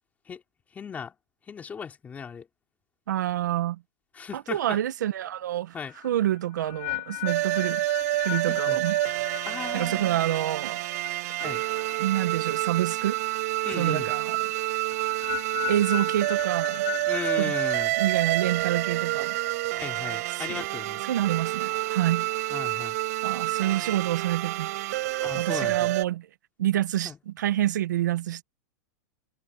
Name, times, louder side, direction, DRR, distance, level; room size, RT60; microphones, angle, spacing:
voice 1, 0.7-1.1 1.5-2.5 4.1-4.8 5.7-5.9 8.5-8.8 9.5-10.2 11.4-11.6 13.6-14.1 17.0-18.0 19.7-21.0 22.5-23.0 25.2-25.9 27.0-27.2, left 6 dB, 15° left, 4.2 m, -37 dB
voice 2, 3.1-3.8 4.3-5.7 6.0-7.8 8.1-9.0 9.7-10.8 12.0-13.2 13.8-14.5 15.7-16.9 17.4-19.3 20.3-20.6 21.1-22.3 23.2-24.7 25.3-26.3 26.6-28.4, right 13 dB, 85° right, 1.4 m, -27 dB
sound 1, 5.9-13.0 13.3-13.7 14.9-19.5, left 29 dB, 50° left, 5.3 m, -38 dB
sound 2, 7.3-26.0, right 18 dB, 60° right, 5.6 m, -28 dB
supercardioid pair, 150°, 10 cm